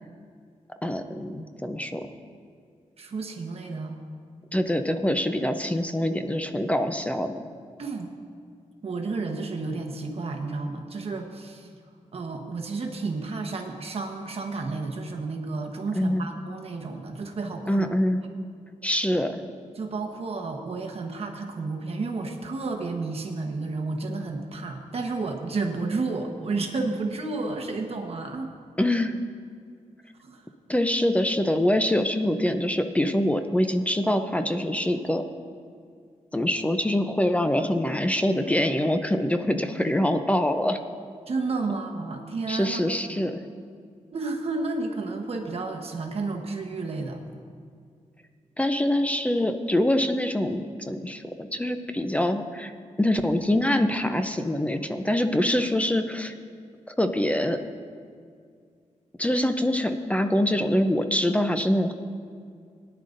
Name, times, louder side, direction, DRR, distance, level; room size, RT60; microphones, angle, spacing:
voice 1, 0.8-2.1 4.5-7.3 16.0-16.2 17.7-18.2 18.8-19.4 28.8-29.2 30.7-35.2 36.3-40.8 42.5-43.4 48.6-52.7 53.0-56.3 57.0-57.6 59.2-61.9, left 1 dB, 10° left, 7 dB, 0.5 m, -24 dB
voice 2, 3.0-4.0 7.8-8.1 8.8-11.7 12.1-17.9 19.8-28.5 30.2-30.4 41.3-42.8 43.1-43.3 44.1-47.2, right 3 dB, 50° right, 2 dB, 1.1 m, -31 dB
18.5 x 10.0 x 2.6 m, 2.2 s
wide cardioid pair, 110°, 13 cm